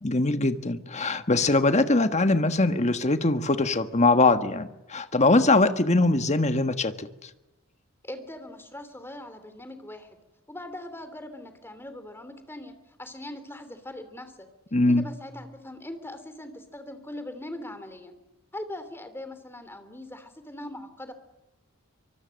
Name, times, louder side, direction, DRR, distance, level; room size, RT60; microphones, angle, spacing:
voice 1, 0.0-7.1 14.7-15.0, left 2 dB, 30° left, 9 dB, 1.5 m, -22 dB
voice 2, 8.0-10.2 10.5-12.7 13.0-14.5 14.9-18.1 18.5-21.1, left 1 dB, 10° left, 9 dB, 3.0 m, -41 dB
24.5 x 24.5 x 6.5 m, 0.98 s
head